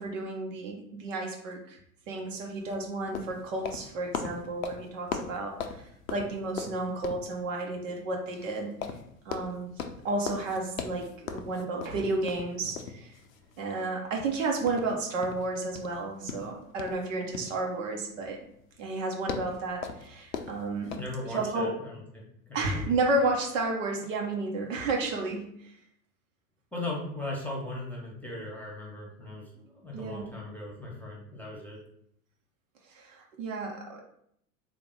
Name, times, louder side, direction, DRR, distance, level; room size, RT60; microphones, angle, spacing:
voice 1, 0.0-1.8 2.1-9.0 9.2-9.7 10.0-13.2 13.6-18.4 18.8-21.0 21.3-21.7 22.5-25.7 29.9-30.3 32.9-34.0, right 2 dB, 60° right, 1 dB, 0.9 m, -32 dB
sound 1, 2.3-21.1, left 6 dB, 65° left, 0.6 m, -41 dB
voice 2, 21.0-22.9 26.7-31.8, left 2 dB, 5° left, -3 dB, 1.1 m, -38 dB
3.6 x 2.9 x 3.7 m, 0.70 s
figure-of-eight pair, 80°, 44 cm